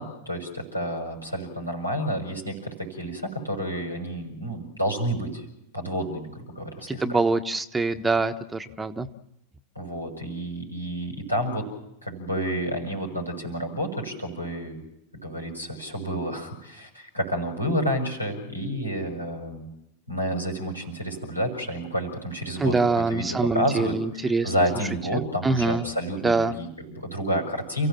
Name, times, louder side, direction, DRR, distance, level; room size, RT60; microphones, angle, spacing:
voice 1, 0.0-5.4 5.7-7.2 9.7-11.7 12.0-14.8 15.1-19.7 20.1-24.0 24.2-27.9, equal, 90° left, 2 dB, 6.6 m, -30 dB
voice 2, 6.9-9.1 22.6-24.5 25.1-25.9 26.2-26.5, right 3 dB, 10° right, 9 dB, 1.2 m, -24 dB
29.5 x 16.0 x 7.5 m, 0.85 s
figure-of-eight pair, 90°, 0 cm